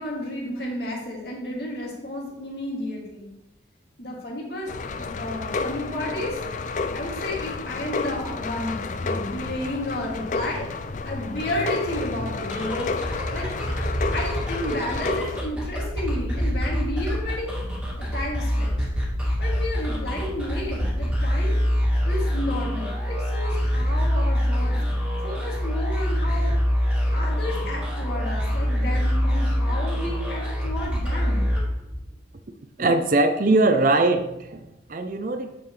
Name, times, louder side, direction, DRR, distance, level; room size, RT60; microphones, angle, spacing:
voice 1, 0.0-3.3 4.0-6.4 6.9-10.7 11.0-13.0 13.3-13.5 14.1-17.6 18.0-18.9 19.4-21.6 22.0-24.8 25.2-26.5 27.1-31.5 32.8-33.0, left 1 dB, 55° left, -3 dB, 2.5 m, -32 dB
sound 1, 4.7-15.4, left 4 dB, 40° left, 0.4 m, -31 dB
sound 2, 12.4-32.1, equal, 5° right, 2.2 m, -25 dB
voice 2, 32.8-35.6, right 2 dB, 45° right, 8 dB, 0.6 m, -21 dB
9.3 x 7.0 x 3.3 m, 0.88 s
head